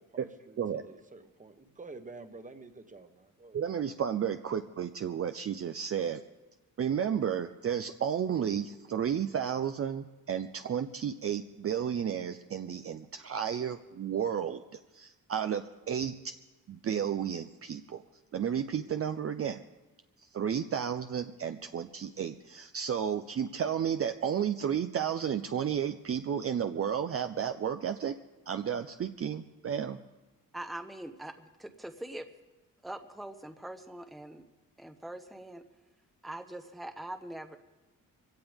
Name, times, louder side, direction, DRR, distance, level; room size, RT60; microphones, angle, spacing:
voice 1, 0.0-3.6, right 3 dB, 25° right, 8 dB, 1.3 m, -49 dB
voice 2, 3.5-6.2 6.8-14.6 14.9-16.1 16.7-18.0 18.3-19.6 20.3-28.2 28.5-30.0, right 8 dB, 40° right, 8 dB, 0.6 m, -32 dB
voice 3, 30.5-32.3 32.8-34.4 34.8-35.6 36.2-37.6, right 1 dB, ahead, 7 dB, 0.9 m, -42 dB
23.5 x 17.0 x 3.6 m, 1.1 s
cardioid pair, 115°, 34 cm